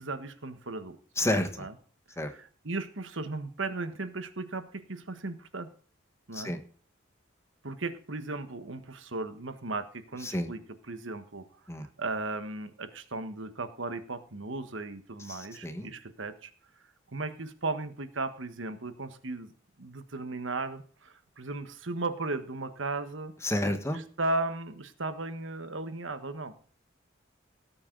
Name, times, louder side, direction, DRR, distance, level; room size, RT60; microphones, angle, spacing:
voice 1, 0.0-1.0 1.6-1.7 2.2-5.7 6.3-6.5 7.6-10.6 10.9-11.4 12.0-16.5 17.1-19.5 19.8-23.3 23.9-26.5, right 3 dB, 70° right, 10 dB, 1.5 m, -36 dB
voice 2, 1.2-1.5 2.2-2.3 6.3-6.6 10.2-10.5 11.7-11.9 15.3-15.9 23.4-24.0, left 1 dB, 15° left, 7 dB, 1.5 m, -30 dB
17.5 x 8.7 x 4.0 m, 0.43 s
head